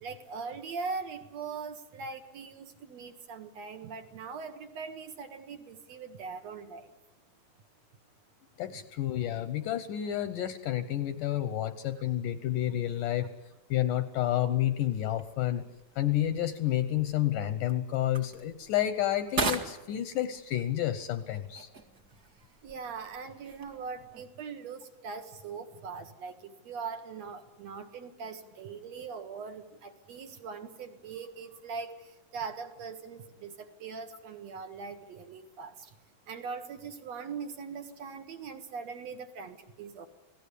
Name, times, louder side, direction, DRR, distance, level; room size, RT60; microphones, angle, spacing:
voice 1, 0.0-6.9 22.6-31.9 32.3-35.9 36.3-40.1, right 5 dB, 55° right, 8 dB, 2.1 m, -41 dB
voice 2, 8.6-13.3 13.7-15.6 16.0-21.7, left 12 dB, 70° left, 13 dB, 2.1 m, -30 dB
sound 1, 15.0-24.2, right 4 dB, 40° right, 1.5 m, -41 dB
28.5 x 18.0 x 8.4 m, 1.0 s
omnidirectional pair, 4.8 m